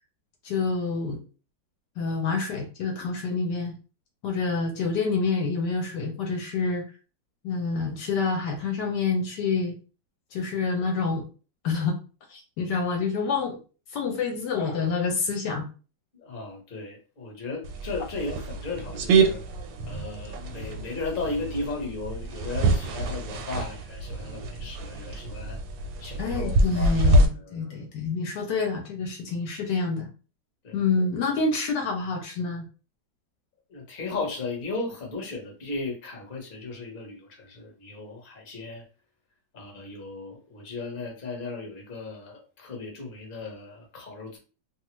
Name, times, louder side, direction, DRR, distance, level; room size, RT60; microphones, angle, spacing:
voice 1, 0.4-1.2 2.0-3.7 4.2-6.8 7.4-9.8 10.3-11.2 11.6-12.0 12.3-13.6 13.9-15.7 26.2-30.1 30.7-32.6, left 4 dB, 75° left, 2 dB, 1.2 m, -27 dB
voice 2, 16.1-19.4 19.9-25.6 26.0-27.9 30.6-30.8 33.7-38.8 39.5-44.4, left 3 dB, 40° left, 1 dB, 0.8 m, -36 dB
sound 1, 17.6-27.3, right 2 dB, 85° right, 1.3 m, -26 dB
2.9 x 2.3 x 3.0 m, 0.35 s
omnidirectional pair, 2.0 m